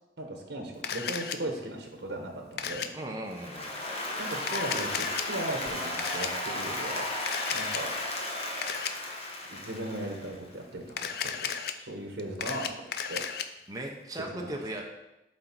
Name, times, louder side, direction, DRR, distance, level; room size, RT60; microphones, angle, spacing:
voice 1, 0.2-2.9 4.2-7.1 7.5-7.9 9.5-11.5 11.8-13.2 14.4-14.6, right 1 dB, 75° right, 2 dB, 1.1 m, -37 dB
Camera, 0.8-1.4 2.6-2.9 4.4-5.2 6.0-6.3 7.3-7.8 8.6-8.9 10.9-11.7 12.2-13.4, left 7 dB, 60° left, 0.4 m, -33 dB
voice 2, 2.9-3.7 13.7-14.8, right 1 dB, 20° right, 0 dB, 0.7 m, -37 dB
Applause, 3.3-10.5, left 1 dB, 35° left, 1.0 m, -34 dB
7.7 x 3.9 x 4.5 m, 0.94 s
head